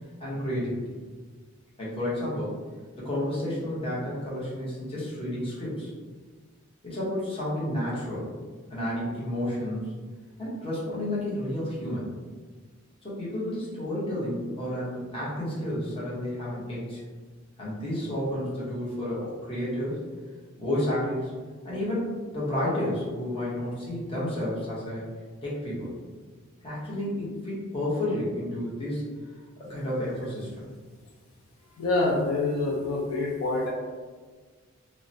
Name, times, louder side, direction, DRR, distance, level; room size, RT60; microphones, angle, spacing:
voice 1, 0.2-0.8 1.8-2.6 3.0-5.9 6.8-8.3 8.7-9.9 10.4-12.1 13.0-17.0 17.6-20.0 20.6-21.4 21.6-25.0 25.4-25.9 26.6-29.0 29.6-30.6, left 1 dB, 25° left, -8 dB, 0.8 m, -31 dB
voice 2, 31.8-33.7, left 2 dB, 85° left, -3 dB, 0.4 m, -26 dB
2.7 x 2.0 x 2.6 m, 1.5 s
head